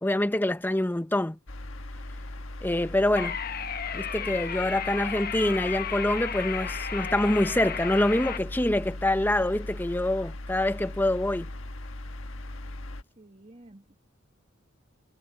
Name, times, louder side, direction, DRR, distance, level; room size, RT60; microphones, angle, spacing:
voice 1, 0.0-1.4 2.6-3.4 3.9-11.5, left 1 dB, 10° left, 0.8 m, -25 dB
sound 1, 1.5-13.0, left 1 dB, 75° left, 1.5 m, -39 dB
sound 2, 3.2-8.4, left 7 dB, 45° left, 1.3 m, -34 dB
voice 2, 13.2-14.0, right 1 dB, 30° right, 2.1 m, -51 dB
head